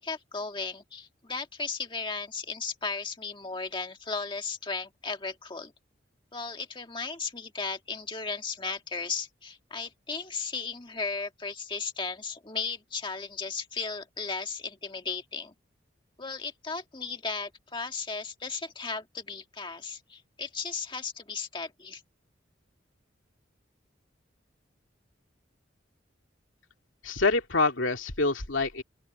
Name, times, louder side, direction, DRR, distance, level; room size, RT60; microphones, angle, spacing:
voice 1, 0.0-5.7 6.3-15.5 16.2-22.0, left 4 dB, 25° left, 1.8 m, -35 dB
voice 2, 27.0-28.8, left 3 dB, 85° left, 2.6 m, -26 dB
open air
head